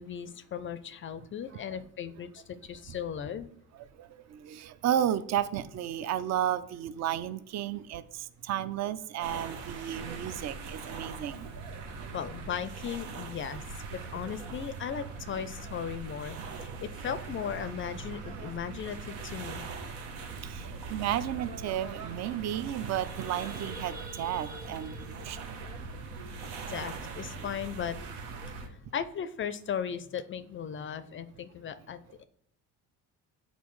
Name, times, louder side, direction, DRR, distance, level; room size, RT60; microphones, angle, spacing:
voice 1, 0.0-3.5 12.1-13.6 14.1-19.6 26.7-28.0 28.9-32.2, left 8 dB, 35° left, 13 dB, 0.4 m, -37 dB
voice 2, 4.0-11.5 20.4-25.5, right 11 dB, 45° right, 15 dB, 0.5 m, -33 dB
sound 1, 9.2-28.7, right 4 dB, 85° right, 1.0 m, -41 dB
sound 2, 22.8-26.8, equal, 20° right, 1.5 m, -49 dB
8.3 x 3.9 x 3.1 m, 0.70 s
supercardioid pair, 90°, 38 cm